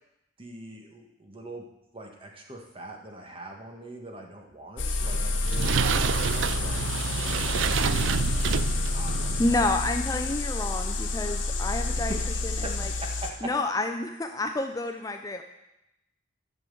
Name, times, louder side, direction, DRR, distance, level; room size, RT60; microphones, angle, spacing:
voice 1, 0.4-1.6 1.9-9.6 10.2-10.4 12.1-13.5, right 1 dB, 30° right, 2 dB, 1.6 m, -43 dB
sound 1, 4.8-13.3, left 2 dB, 80° left, 1.3 m, -29 dB
sound 2, 5.0-9.9, right 7 dB, 80° right, 0.4 m, -29 dB
voice 2, 9.4-12.2 12.4-12.9 13.4-15.4, left 2 dB, 20° left, 6 dB, 0.5 m, -29 dB
11.5 x 6.1 x 6.9 m, 0.90 s
head